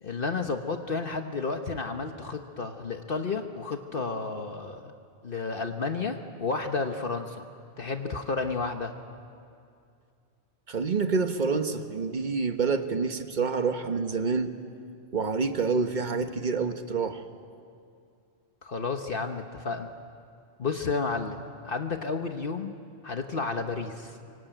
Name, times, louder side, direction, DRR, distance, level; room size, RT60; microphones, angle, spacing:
voice 1, 0.0-4.9 5.2-7.4 7.8-8.9 18.6-19.9 20.6-22.7 23.0-24.2, left 4 dB, 55° left, 5 dB, 1.3 m, -31 dB
voice 2, 10.7-14.5 15.1-17.2, right 4 dB, 45° right, 7 dB, 1.4 m, -27 dB
25.0 x 23.5 x 9.1 m, 2.4 s
omnidirectional pair, 1.1 m